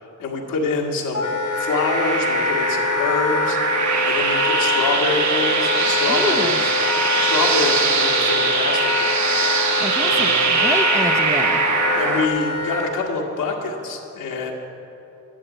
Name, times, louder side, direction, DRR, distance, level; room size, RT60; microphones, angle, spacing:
voice 1, 0.2-3.6 4.0-6.7 7.2-9.3 10.0-10.4 11.9-14.5, left 3 dB, 90° left, -1 dB, 1.8 m, -26 dB
Wind instrument woodwind instrument, 1.1-12.9, left 4 dB, 70° left, 1.6 m, -24 dB
sound 1, 1.5-12.3, right 5 dB, 65° right, 1.1 m, -22 dB
voice 2, 5.8-6.7 9.8-11.6, equal, 10° right, 7 dB, 0.7 m, -28 dB
12.0 x 7.9 x 7.8 m, 2.8 s
cardioid pair, 70°, 31 cm